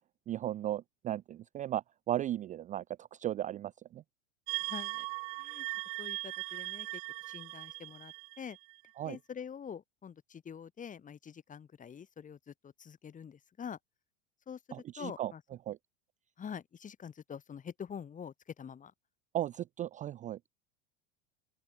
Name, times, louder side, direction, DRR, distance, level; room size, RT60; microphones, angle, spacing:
voice 1, 0.3-4.0 9.0-9.2 14.7-15.3 15.7-15.8 19.3-20.4, right 12 dB, 25° right, 0.4 m, -36 dB
sound 1, 4.5-8.9, right 37 dB, 50° right, 0.8 m, -39 dB
voice 2, 4.6-5.0 5.4-5.7 6.0-7.0 7.3-8.6 9.0-13.8 14.5-14.6 15.0-15.4 16.4-18.9, left 7 dB, 25° left, 1.7 m, -45 dB
open air
hypercardioid pair, 85°, 33 cm